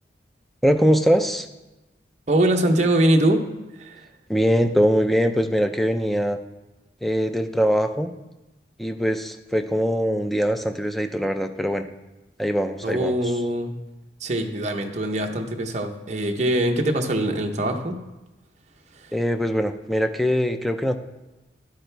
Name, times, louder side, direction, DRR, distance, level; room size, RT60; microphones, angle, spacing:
voice 1, 0.6-1.5 4.3-6.4 7.0-8.1 8.8-11.9 12.4-13.2 19.1-21.0, equal, ahead, 7 dB, 0.5 m, -22 dB
voice 2, 2.3-3.4 3.7-4.1 12.8-13.8 14.2-18.0 18.9-19.1, right 1 dB, 40° right, 3 dB, 0.8 m, -23 dB
11.0 x 10.5 x 3.4 m, 1.0 s
head